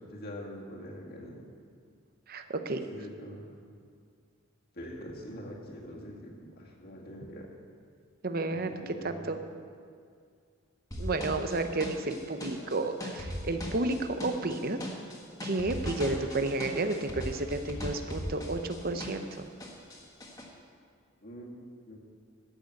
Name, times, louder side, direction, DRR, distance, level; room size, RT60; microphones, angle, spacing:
voice 1, 0.0-1.5 2.9-3.5 4.7-7.5 8.6-9.3 21.2-22.0, equal, 45° left, -3 dB, 2.0 m, -44 dB
voice 2, 2.3-2.8 8.2-9.4 11.0-14.8 15.4-19.5, right 2 dB, 45° right, 8 dB, 0.8 m, -31 dB
sound 1, 10.9-19.3 19.6-20.4, left 1 dB, 15° left, 1.5 m, -38 dB
14.0 x 6.5 x 8.2 m, 2.2 s
head